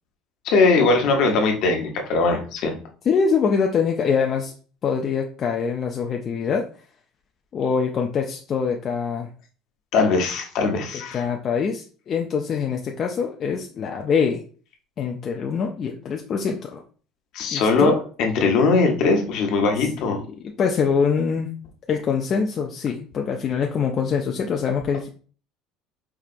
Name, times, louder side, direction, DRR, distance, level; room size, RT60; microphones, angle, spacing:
voice 1, 0.4-2.7 9.9-11.2 17.3-17.9 18.2-20.2, left 3 dB, 60° left, 3 dB, 0.9 m, -20 dB
voice 2, 3.1-4.5 4.8-6.7 7.5-9.3 11.1-14.4 15.0-16.8 17.5-18.0 20.0-20.1 20.4-21.5 21.9-25.1, left 6 dB, 35° left, 2 dB, 0.4 m, -24 dB
4.7 x 2.8 x 2.5 m, 0.41 s
cardioid pair, 145°, 0 cm